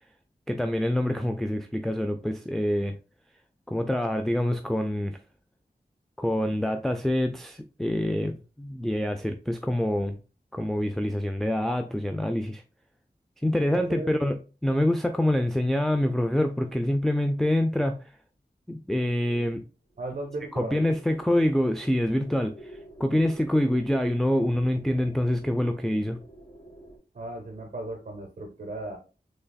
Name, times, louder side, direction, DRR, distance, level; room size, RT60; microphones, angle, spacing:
voice 1, 0.5-3.0 3.7-5.2 6.2-10.2 10.5-12.6 13.4-18.0 18.7-19.6 20.5-26.2, left 1 dB, ahead, 0.4 m, -26 dB
voice 2, 13.7-14.1 20.0-20.8 27.1-29.0, right 2 dB, 50° right, 0.7 m, -36 dB
sound 1, 19.9-27.0, right 1 dB, 20° left, 1.4 m, -49 dB
3.8 x 3.2 x 2.2 m
cardioid pair, 45°, 17 cm